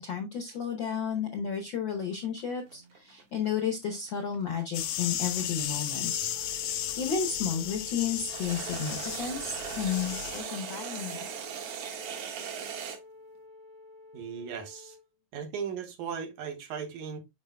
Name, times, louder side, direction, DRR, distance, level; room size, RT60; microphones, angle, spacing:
voice 1, 0.0-6.3 7.0-11.3, left 7 dB, 70° left, 1.1 m, -32 dB
sound 1, 2.0-7.1 8.2-13.0, right 7 dB, 60° right, 1.7 m, -39 dB
sound 2, 4.7-10.4, left 10 dB, 85° left, 2.4 m, -34 dB
Wind instrument woodwind instrument, 5.9-15.0, left 3 dB, 45° left, 0.5 m, -51 dB
voice 2, 14.1-15.0 15.3-17.2, right 7 dB, 85° right, 2.8 m, -37 dB
8.0 x 5.2 x 2.2 m
omnidirectional pair, 3.4 m